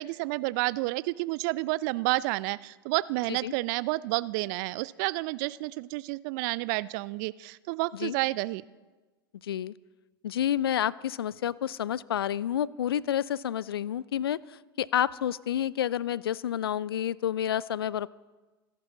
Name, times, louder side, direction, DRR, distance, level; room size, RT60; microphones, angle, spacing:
voice 1, 0.0-8.6, right 21 dB, 50° right, 20 dB, 0.5 m, -30 dB
voice 2, 9.4-9.7 10.2-18.1, left 10 dB, 75° left, 22 dB, 0.4 m, -29 dB
28.0 x 11.0 x 3.9 m, 1.2 s
figure-of-eight pair, 90°, 13 cm